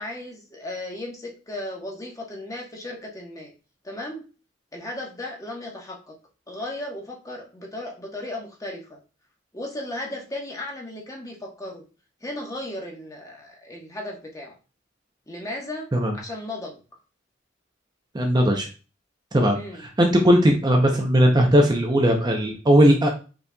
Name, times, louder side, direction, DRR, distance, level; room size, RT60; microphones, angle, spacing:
voice 1, 0.0-3.5 3.8-4.2 4.7-6.1 6.5-9.0 9.5-11.8 12.2-14.5 15.3-15.9 16.1-16.8 19.5-19.9, left 1 dB, 20° left, -1 dB, 1.2 m, -35 dB
voice 2, 18.1-18.7 19.3-23.1, equal, 20° right, 2 dB, 0.7 m, -18 dB
5.5 x 4.1 x 2.3 m, 0.34 s
head